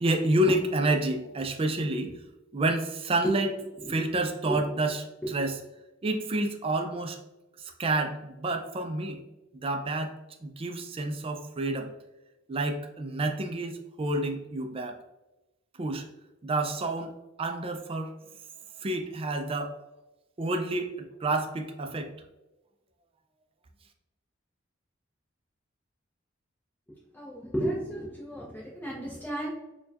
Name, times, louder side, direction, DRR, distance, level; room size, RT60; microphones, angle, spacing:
voice 1, 0.0-2.1 2.5-3.5 3.9-5.6 6.0-7.2 7.8-9.2 9.6-10.1 10.4-11.9 12.5-15.0 15.8-16.0 16.4-17.1 17.4-18.1 18.8-19.7 20.4-20.9 21.2-22.1, right 2 dB, 30° right, 5 dB, 0.4 m, -29 dB
voice 2, 27.1-29.5, right 1 dB, 10° left, -6 dB, 0.7 m, -33 dB
4.3 x 2.3 x 2.7 m, 1.0 s
head